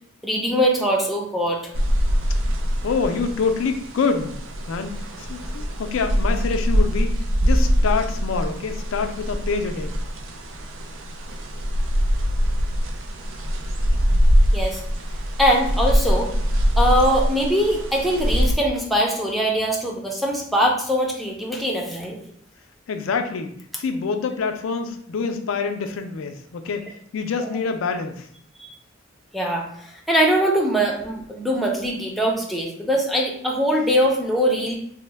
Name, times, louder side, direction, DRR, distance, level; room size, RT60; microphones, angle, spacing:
voice 1, 0.2-1.7 14.5-14.8 15.4-16.3 16.8-22.2 27.4-27.5 28.6-28.7 29.3-34.8, equal, ahead, -1 dB, 0.5 m, -22 dB
sound 1, 1.7-18.5, equal, 80° right, 0.5 m, -23 dB
voice 2, 2.8-4.4 4.7-10.0 22.9-28.3, left 5 dB, 85° left, 6 dB, 0.4 m, -26 dB
3.1 x 2.1 x 3.2 m, 0.67 s
head